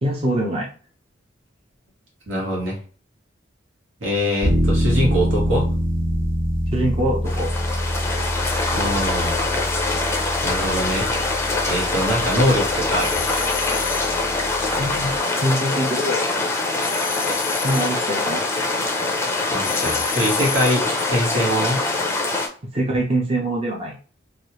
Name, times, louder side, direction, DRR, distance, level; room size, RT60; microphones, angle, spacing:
voice 1, 0.0-0.7 6.7-7.5 14.8-15.1 15.4-16.3 17.6-18.5 22.7-24.0, right 1 dB, 30° right, -1 dB, 0.6 m, -23 dB
voice 2, 2.3-2.8 4.0-5.7 8.7-9.4 10.4-11.0 11.7-13.3 19.5-21.8, equal, 80° right, -2 dB, 1.5 m, -23 dB
sound 1, 4.4-15.2, equal, 50° right, 1.6 m, -25 dB
sound 2, 7.2-22.5, left 3 dB, 15° left, 0.5 m, -24 dB
sound 3, 13.0-14.2 16.8-18.0 19.6-20.9, left 11 dB, 70° left, 0.4 m, -31 dB
3.2 x 2.4 x 3.0 m, 0.38 s
head